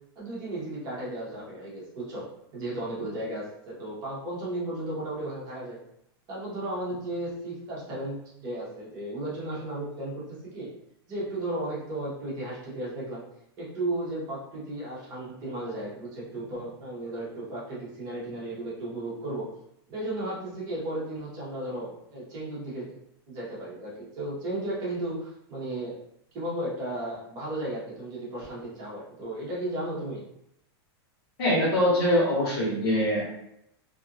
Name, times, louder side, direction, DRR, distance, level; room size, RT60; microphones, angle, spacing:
voice 1, 0.2-2.2 2.5-5.8 6.3-10.2 10.5-10.7 11.1-13.2 13.6-19.5 19.9-22.9 23.3-26.0 26.3-30.3, right 1 dB, 30° right, -7 dB, 0.9 m, -34 dB
voice 2, 31.4-33.3, left 1 dB, 65° left, -4 dB, 1.3 m, -23 dB
2.8 x 2.5 x 2.5 m, 0.78 s
supercardioid pair, 165°, 14 cm